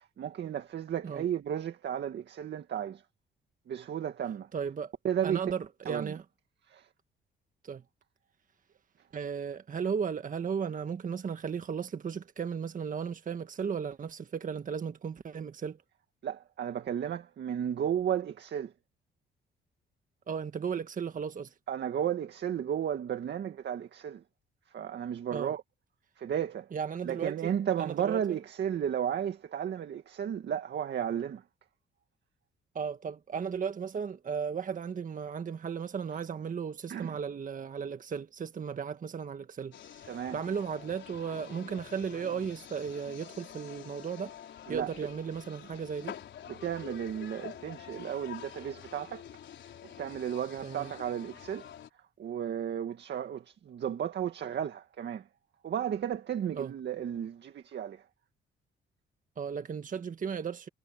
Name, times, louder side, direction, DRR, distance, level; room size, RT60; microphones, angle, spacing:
voice 1, 0.0-3.0 3.7-4.5 5.0-5.5 5.9-6.1 6.7-6.9 16.2-18.7 21.7-24.2 24.7-25.6 26.2-26.7 27.0-31.4 36.9-37.2 40.1-40.4 44.7-44.9 46.5-49.3 49.8-51.7 51.9-55.3 55.6-58.1, right 9 dB, 60° right, 2.0 m, -34 dB
voice 2, 4.5-4.9 5.2-6.2 7.6-7.8 9.1-15.8 20.3-21.5 25.3-25.5 26.7-27.5 27.8-28.2 32.7-40.1 40.3-44.3 44.7-46.1 50.6-50.9 56.6-56.7 59.4-60.7, right 6 dB, 40° right, 1.5 m, -35 dB
sound 1, 39.7-51.9, left 10 dB, 65° left, 4.5 m, -47 dB
cardioid pair, 90°, 20 cm